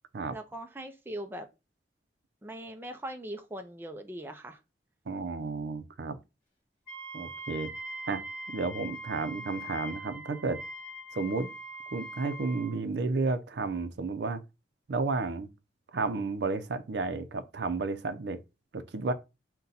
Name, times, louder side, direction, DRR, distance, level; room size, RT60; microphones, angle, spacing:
voice 1, 0.3-1.5 2.4-4.6, right 1 dB, 10° right, 0.4 m, -40 dB
voice 2, 5.1-6.2 7.1-7.7 8.1-8.2 8.5-10.6 11.1-11.5 11.9-14.4 14.9-15.5 15.9-18.4 18.7-19.1, right 3 dB, 80° right, 0.5 m, -32 dB
Wind instrument woodwind instrument, 6.9-12.8, right 1 dB, 30° left, 1.5 m, -42 dB
3.9 x 2.2 x 4.0 m
head